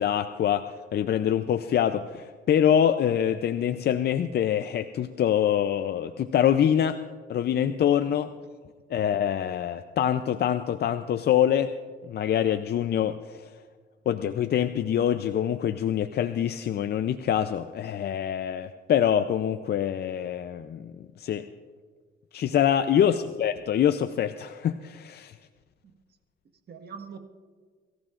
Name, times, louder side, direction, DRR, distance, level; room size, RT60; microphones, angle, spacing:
voice 1, 0.0-7.0 7.3-8.3 8.9-11.7 12.0-13.5 14.1-21.5 22.3-25.3, left 9 dB, 55° left, 9 dB, 0.5 m, -25 dB
voice 2, 23.0-23.4 25.8-26.0 26.7-27.2, right 6 dB, 55° right, 4 dB, 1.5 m, -44 dB
23.5 x 14.5 x 2.5 m, 1.5 s
cardioid pair, 90°, 20 cm